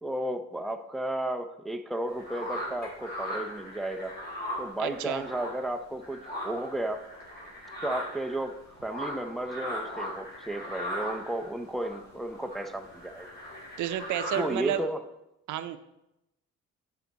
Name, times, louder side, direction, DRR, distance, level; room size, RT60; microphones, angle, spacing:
voice 1, 0.0-4.1 4.6-7.0 7.8-13.3 14.4-15.1, right 1 dB, ahead, 6 dB, 0.5 m, -33 dB
sound 1, 2.1-5.7 6.0-14.8, equal, 35° left, 3.7 m, -38 dB
voice 2, 4.8-5.2 13.8-14.8 15.5-15.8, right 11 dB, 75° right, 11 dB, 0.6 m, -31 dB
8.1 x 7.6 x 4.0 m, 0.88 s
cardioid pair, 90°, 30 cm